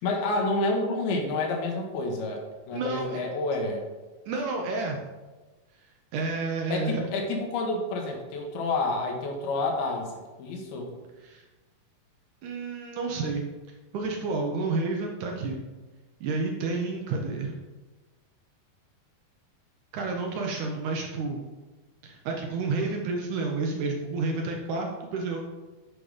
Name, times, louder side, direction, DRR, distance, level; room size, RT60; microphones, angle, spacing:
voice 1, 0.0-3.9 6.7-10.1 10.4-10.9, left 2 dB, 85° left, 1 dB, 3.3 m, -29 dB
voice 2, 2.7-3.2 4.3-5.0 6.1-7.0 11.2-11.4 12.4-13.5 13.9-15.6 16.2-17.5 19.9-21.5 22.0-25.4, right 3 dB, 70° right, 1 dB, 2.0 m, -30 dB
8.8 x 5.3 x 5.0 m, 1.2 s
omnidirectional pair, 4.3 m